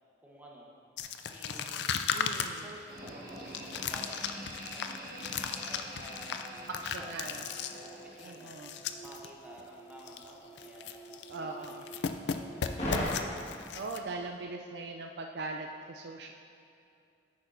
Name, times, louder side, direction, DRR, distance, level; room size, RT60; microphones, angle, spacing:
voice 1, 0.2-0.8 1.3-1.8 2.6-6.6 7.0-8.6 9.0-13.1, equal, 10° right, -3 dB, 1.0 m, -53 dB
sound 1, 1.0-9.3 9.6-9.7 10.0-10.3 10.6-11.4 11.6-14.0, left 7 dB, 75° left, 0.4 m, -36 dB
voice 2, 2.1-2.7 6.8-7.4 8.2-8.7 11.3-11.8 13.7-16.3, right 3 dB, 75° right, 3 dB, 0.4 m, -40 dB
sound 2, 2.9-8.9, right 1 dB, 55° right, 1.6 m, -46 dB
sound 3, 6.3-13.0, equal, 40° left, 1.6 m, -44 dB
10.5 x 8.5 x 2.6 m, 2.7 s
head